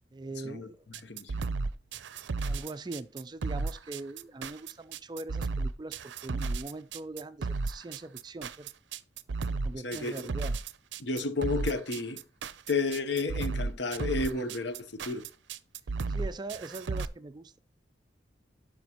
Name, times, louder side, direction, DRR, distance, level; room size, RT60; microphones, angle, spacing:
voice 1, 0.1-0.8 2.4-8.7 9.6-10.6 16.1-17.6, right 2 dB, 25° right, 0.4 m, -41 dB
sound 1, 0.9-17.1, right 3 dB, 80° right, 0.5 m, -33 dB
voice 2, 1.0-1.5 9.8-10.3 11.0-12.2 12.7-15.2, left 3 dB, 75° left, 0.9 m, -32 dB
12.0 x 5.0 x 2.9 m
head